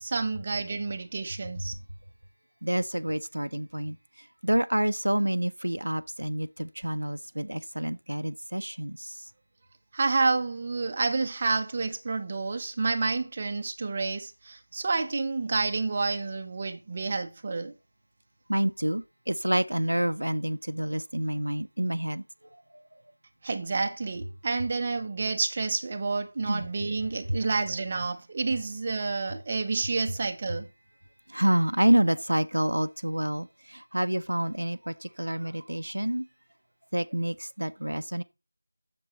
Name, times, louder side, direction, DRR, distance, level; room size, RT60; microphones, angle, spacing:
voice 1, 0.0-1.7 9.9-17.7 23.4-30.7, right 3 dB, 25° right, 0.6 m, -29 dB
voice 2, 2.6-4.0 4.4-9.1 18.5-22.2 26.5-26.6 31.3-33.5 33.9-36.2 36.9-38.2, right 1 dB, 90° right, 0.6 m, -28 dB
7.5 x 6.9 x 3.0 m
figure-of-eight pair, 175°, 0 cm